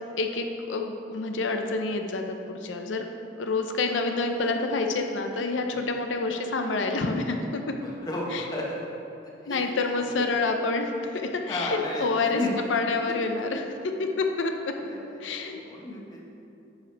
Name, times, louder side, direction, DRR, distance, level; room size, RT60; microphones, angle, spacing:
voice 1, 0.2-3.0 3.4-7.8 8.3-8.4 9.5-13.7 14.0-14.7 15.2-15.6, left 3 dB, 85° left, 5 dB, 0.6 m, -28 dB
voice 2, 7.8-8.8 9.4-9.7 10.0-10.2 11.5-12.1 12.4-12.5 14.8-16.2, left 1 dB, 20° left, -3 dB, 1.2 m, -34 dB
10.0 x 4.9 x 4.6 m, 2.8 s
head